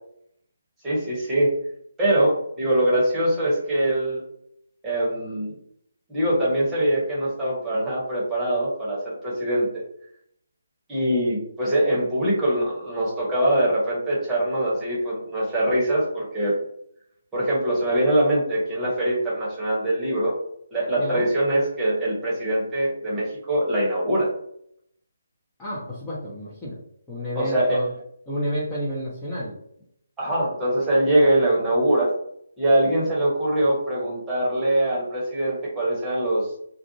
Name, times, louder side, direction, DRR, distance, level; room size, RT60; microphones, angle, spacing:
voice 1, 0.8-1.5 2.0-4.2 4.8-5.5 6.1-9.8 10.9-16.5 17.3-20.4 20.7-24.3 27.3-27.8 30.2-32.1 32.6-36.5, right 1 dB, 10° right, -7 dB, 1.0 m, -23 dB
voice 2, 21.0-21.3 25.6-26.8 27.1-27.9 28.3-29.6, equal, 10° left, -10 dB, 0.6 m, -30 dB
2.4 x 2.2 x 2.7 m, 0.70 s
figure-of-eight pair, 145°, 0 cm